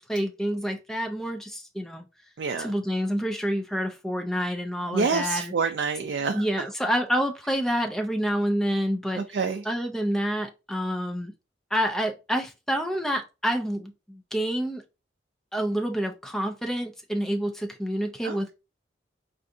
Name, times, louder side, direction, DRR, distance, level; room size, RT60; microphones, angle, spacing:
voice 1, 0.1-2.1 2.6-5.5 6.3-9.2 9.7-11.3 11.7-14.8 15.5-18.5, equal, 5° left, 0.4 m, -28 dB
voice 2, 2.4-2.7 4.9-6.4 9.2-9.6 18.2-18.5, right 4 dB, 65° right, 0.4 m, -27 dB
4.5 x 2.5 x 2.6 m
head